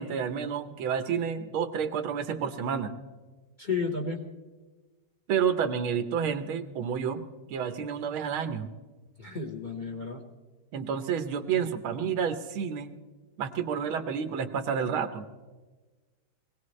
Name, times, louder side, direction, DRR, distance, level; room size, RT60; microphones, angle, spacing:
voice 1, 0.0-2.9 5.3-7.2 7.5-8.7 10.7-12.9 13.4-15.2, right 7 dB, 85° right, 9 dB, 1.8 m, -30 dB
voice 2, 3.6-4.2 9.2-10.2, left 4 dB, 30° left, 1 dB, 1.1 m, -32 dB
22.5 x 17.5 x 3.2 m, 1.3 s
omnidirectional pair, 2.2 m